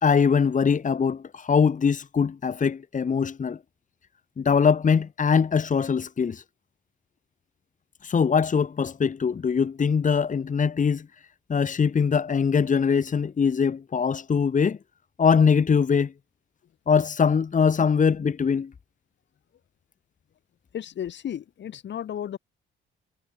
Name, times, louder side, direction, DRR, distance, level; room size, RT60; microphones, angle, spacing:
voice 1, 0.0-3.6 4.4-6.4 8.0-11.1 11.5-14.8 15.2-16.1 16.9-18.7, left 6 dB, 40° left, 2.7 m, -22 dB
voice 2, 20.7-22.4, left 10 dB, 65° left, 5.0 m, -33 dB
cardioid pair, 90°, 20 cm